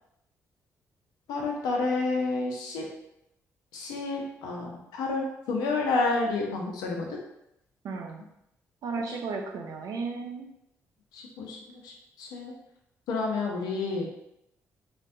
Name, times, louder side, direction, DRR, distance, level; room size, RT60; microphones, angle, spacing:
voice 1, 1.3-2.9 3.7-7.1 9.0-9.2 11.1-11.6 11.8-11.9 12.2-12.5 13.1-14.1, left 3 dB, 85° left, 0 dB, 0.6 m, -29 dB
voice 2, 7.8-8.2 8.8-10.5, right 4 dB, 70° right, 2 dB, 0.5 m, -34 dB
3.2 x 2.1 x 2.5 m, 0.82 s
supercardioid pair, 55°, 7 cm